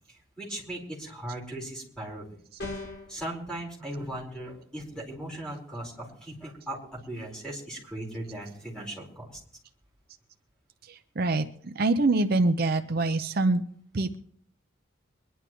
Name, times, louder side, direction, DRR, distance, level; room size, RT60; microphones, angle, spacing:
voice 1, 0.1-2.3 3.1-9.4, right 1 dB, 5° left, -2 dB, 4.5 m, -38 dB
sound 1, 2.6-3.1, left 2 dB, 60° left, 5.8 m, -36 dB
voice 2, 11.8-13.6 13.9-14.2, right 2 dB, 50° right, 7 dB, 0.6 m, -24 dB
23.5 x 11.0 x 3.1 m, 0.63 s
head